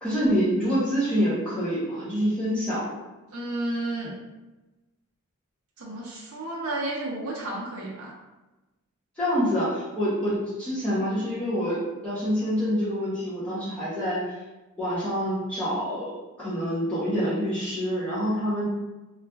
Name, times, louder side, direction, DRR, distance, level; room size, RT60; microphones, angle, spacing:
voice 1, 0.0-3.0 9.2-14.2 14.8-18.7, equal, 5° left, -12 dB, 0.7 m, -26 dB
voice 2, 3.3-4.1 5.8-8.2, right 2 dB, 70° right, -3 dB, 0.6 m, -32 dB
4.0 x 2.4 x 2.2 m, 1.1 s
head